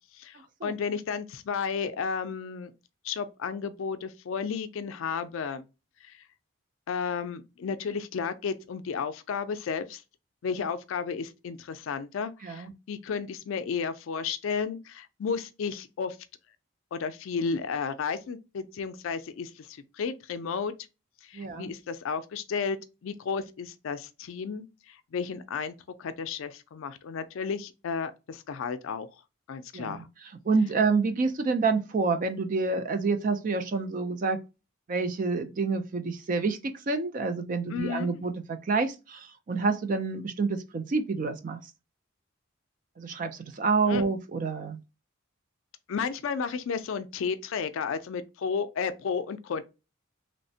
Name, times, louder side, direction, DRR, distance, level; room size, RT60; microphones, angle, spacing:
voice 1, 0.1-2.7 3.0-5.6 6.0-6.2 6.9-10.0 10.4-16.2 16.9-20.7 21.2-29.1 29.5-30.1 37.7-38.2 43.9-44.0 45.9-49.6, left 6 dB, 75° left, 0.3 m, -33 dB
voice 2, 21.3-21.7 29.7-30.0 30.5-34.4 34.9-41.6 43.0-44.8, right 4 dB, 40° right, 0.3 m, -28 dB
3.1 x 2.1 x 2.6 m
head